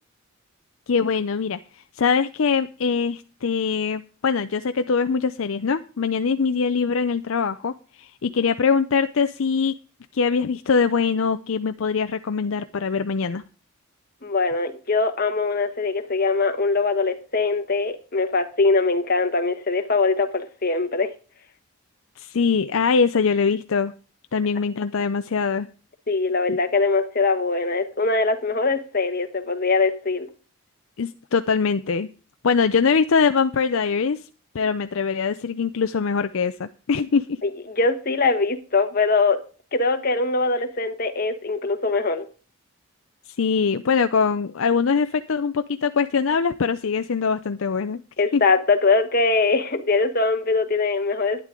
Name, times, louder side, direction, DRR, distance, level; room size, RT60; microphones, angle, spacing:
voice 1, 0.9-9.7 10.1-13.4 22.2-23.9 24.3-25.7 26.5-26.6 31.0-32.1 32.4-34.2 34.5-37.4 43.4-48.0 48.3-48.4, left 5 dB, 65° left, 0.5 m, -22 dB
voice 2, 14.2-21.1 26.1-30.3 37.4-39.4 39.7-42.3 48.2-51.4, left 3 dB, 40° left, 1.2 m, -22 dB
11.5 x 10.5 x 3.7 m
head